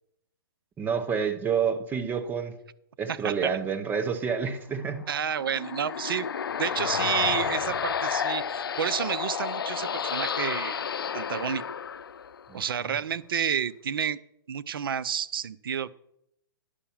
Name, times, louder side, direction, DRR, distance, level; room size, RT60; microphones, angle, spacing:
voice 1, 0.8-2.5 3.0-5.1 12.5-13.0, right 6 dB, 15° right, 8 dB, 0.9 m, -29 dB
voice 2, 3.1-3.5 5.1-6.3 6.6-10.8 11.1-11.6 12.5-14.2 14.5-15.9, right 8 dB, 70° right, 16 dB, 0.5 m, -30 dB
sound 1, 5.0-12.6, left 7 dB, 75° left, 0.5 m, -31 dB
10.0 x 5.7 x 7.1 m, 0.77 s
hypercardioid pair, 130°, 12 cm